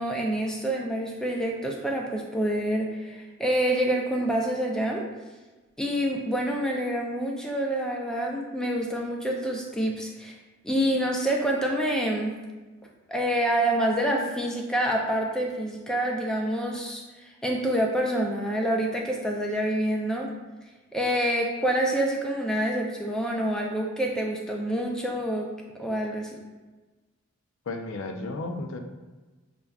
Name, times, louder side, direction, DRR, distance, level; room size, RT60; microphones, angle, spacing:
voice 1, 0.0-5.1 5.8-10.4 10.6-12.3 13.1-20.3 20.9-25.5 25.8-26.3, right 1 dB, 5° left, -1 dB, 0.4 m, -27 dB
voice 2, 27.7-28.8, left 2 dB, 70° left, 4 dB, 0.4 m, -33 dB
6.5 x 2.2 x 2.3 m, 1.2 s
head